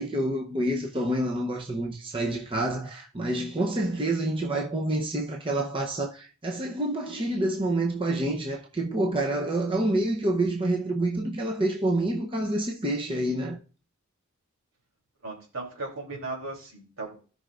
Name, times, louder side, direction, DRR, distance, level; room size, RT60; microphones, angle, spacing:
voice 1, 0.0-13.6, right 1 dB, 25° right, 0.7 m, -28 dB
voice 2, 15.2-17.2, right 3 dB, 75° right, 3.1 m, -37 dB
16.0 x 5.5 x 2.5 m
head